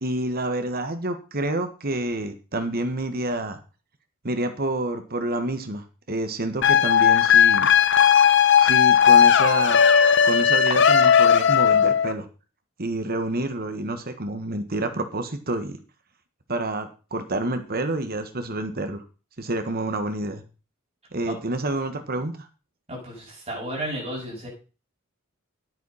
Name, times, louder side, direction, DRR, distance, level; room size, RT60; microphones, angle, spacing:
voice 1, 0.0-3.6 4.2-7.7 8.6-9.8 10.2-12.3 12.8-15.8 16.5-19.0 19.4-20.4 21.1-22.5, right 2 dB, 45° right, 8 dB, 1.4 m, -28 dB
sound 1, 6.6-12.1, left 7 dB, 60° left, 0.9 m, -16 dB
voice 2, 22.9-24.5, right 1 dB, 30° right, -3 dB, 7.9 m, -33 dB
9.5 x 9.2 x 5.6 m, 0.34 s
head